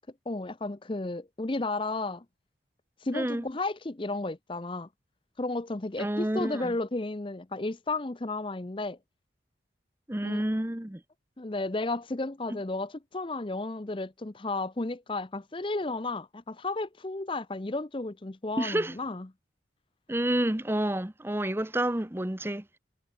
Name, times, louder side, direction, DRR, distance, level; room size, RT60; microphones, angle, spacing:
voice 1, 0.3-2.2 3.0-4.9 5.4-9.0 10.2-10.4 11.4-19.3, left 2 dB, 25° left, 0.7 m, -33 dB
voice 2, 3.1-3.4 6.0-6.7 10.1-11.0 18.6-18.9 20.1-22.6, right 1 dB, 10° right, 0.8 m, -29 dB
head